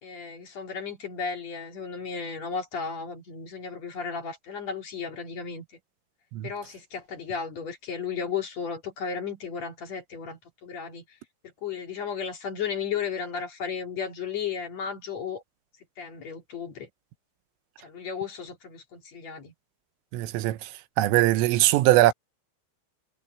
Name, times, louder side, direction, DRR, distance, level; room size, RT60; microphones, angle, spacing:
voice 1, 0.0-5.7 6.4-11.2 11.6-15.4 16.0-16.9 17.8-19.5, left 6 dB, 45° left, 2.6 m, -34 dB
voice 2, 20.1-20.7 21.0-22.1, right 16 dB, 85° right, 3.5 m, -21 dB
omnidirectional pair, 5.9 m